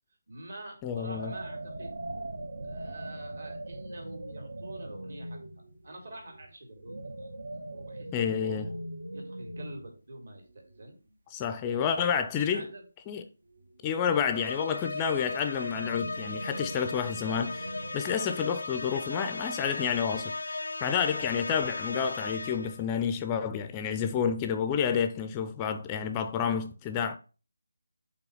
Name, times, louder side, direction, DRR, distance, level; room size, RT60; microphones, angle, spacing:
voice 1, 0.3-1.9 2.6-5.4 5.8-7.3 7.6-8.8 9.1-10.9 11.8-12.8 14.1-14.3 14.6-14.8, right 1 dB, 65° right, 2.7 m, -46 dB
voice 2, 0.8-1.3 8.1-8.7 11.3-12.7 13.1-13.2 13.8-27.2, left 7 dB, 15° left, 0.4 m, -30 dB
sound 1, 1.0-10.0 10.3-10.9 13.5-14.7 15.6-17.9, right 1 dB, 85° right, 1.1 m, -41 dB
sound 2, 14.3-22.8, left 2 dB, 85° left, 0.6 m, -37 dB
5.4 x 4.2 x 5.5 m
figure-of-eight pair, 165°, 0 cm